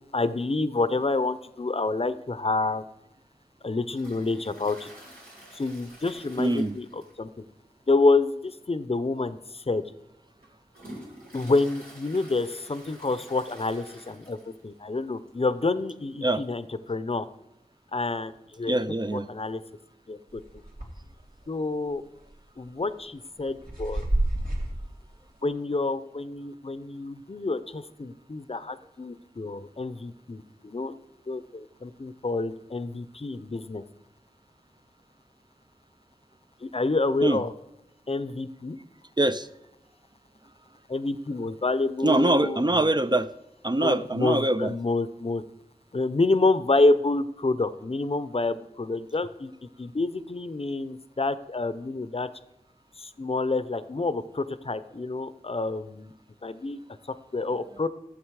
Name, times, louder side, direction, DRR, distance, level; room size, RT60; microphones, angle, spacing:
voice 1, 0.1-2.8 3.6-4.9 5.5-7.3 7.9-9.8 11.3-14.4 14.6-17.3 17.9-18.3 18.6-18.7 19.3-19.6 20.1-20.4 21.5-22.0 22.6-24.0 25.4-30.9 31.3-33.8 36.6-37.5 38.1-38.8 40.9-42.6 43.8-45.4 45.9-52.3 53.0-56.1 56.4-56.8 57.3-57.9, left 3 dB, 40° left, 13 dB, 0.6 m, -28 dB
Toilet flush, 3.9-7.4 7.6-7.7 8.2-8.3 9.1-9.2 9.8-14.7 15.0-15.1 15.3-15.4 16.4-16.5, right 1 dB, 90° right, 4.0 m, -48 dB
voice 2, 6.4-6.8 11.1-11.2 16.2-16.5 18.7-19.3 37.2-37.4 39.2-39.5 42.0-43.3 43.6-44.7, right 2 dB, 30° right, 11 dB, 0.4 m, -24 dB
sound 1, 20.4-21.1 21.5-21.6 22.2-22.6 23.2-24.8, right 1 dB, 70° right, 2.7 m, -28 dB
12.5 x 7.2 x 4.7 m, 0.90 s
wide cardioid pair, 45°, 15 cm